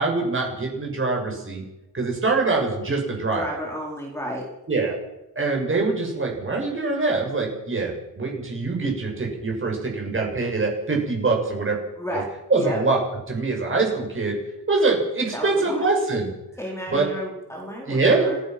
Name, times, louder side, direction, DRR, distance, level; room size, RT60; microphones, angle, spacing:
voice 1, 0.0-1.6 1.9-3.4 4.7-5.0 5.4-11.8 12.1-12.2 12.5-13.0 13.3-14.4 14.7-16.3 16.9-17.1 17.9-18.3, right 3 dB, 30° right, 0 dB, 6.9 m, -24 dB
voice 2, 3.3-4.4 12.0-12.3 12.6-12.8 15.3-15.9 16.6-18.4, equal, 5° left, -2 dB, 4.3 m, -31 dB
28.5 x 15.5 x 6.1 m, 0.95 s
wide cardioid pair, 145°, 39 cm